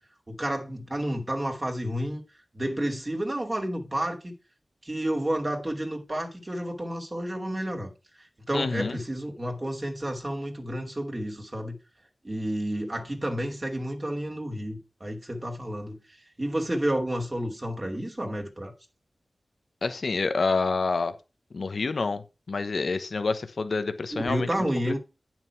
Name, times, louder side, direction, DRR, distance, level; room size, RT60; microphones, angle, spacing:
voice 1, 0.3-2.2 2.5-4.3 4.8-7.9 8.5-11.8 12.2-16.0 16.4-18.7 24.1-25.0, right 1 dB, 30° right, 2.4 m, -30 dB
voice 2, 8.5-9.0 19.8-21.1 21.5-24.5 24.9-25.0, left 4 dB, 70° left, 1.0 m, -28 dB
9.2 x 6.0 x 4.6 m
wide cardioid pair, 75°, 0 cm